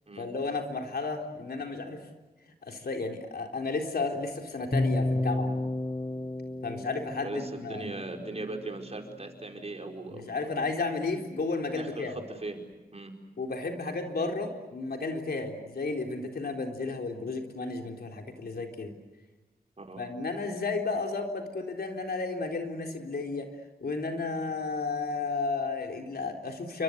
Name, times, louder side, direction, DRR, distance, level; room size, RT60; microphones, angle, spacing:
voice 1, 0.2-2.1 2.4-5.6 6.6-7.9 10.1-12.2 13.4-19.0 20.0-23.5 23.8-26.8, left 3 dB, 90° left, 3 dB, 3.9 m, -33 dB
sound 1, 4.7-8.8, left 2 dB, 30° left, 2.0 m, -31 dB
voice 2, 7.2-10.4 11.8-12.1 12.4-12.6 12.9-13.1 19.8-20.0, right 2 dB, 40° right, 2 dB, 4.9 m, -39 dB
29.0 x 25.0 x 8.0 m, 1.1 s
wide cardioid pair, 90°, 16 cm